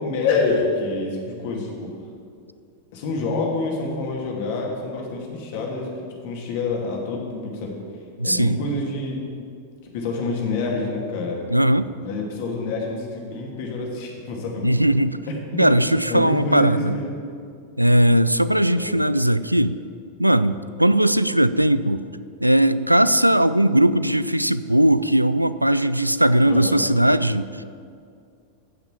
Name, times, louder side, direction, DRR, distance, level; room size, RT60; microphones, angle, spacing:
voice 1, 0.0-1.9 2.9-7.7 8.2-9.2 9.9-11.4 12.0-15.8 16.1-17.2 18.7-19.0 26.4-26.9, left 3 dB, 50° left, -1 dB, 2.6 m, -27 dB
voice 2, 8.2-8.6 11.5-11.9 14.6-15.2 15.6-17.0 17.8-19.8 20.2-22.0 22.4-27.6, right 1 dB, 90° right, 15 dB, 0.3 m, -18 dB
15.0 x 5.9 x 7.4 m, 2.3 s
figure-of-eight pair, 90°, 0 cm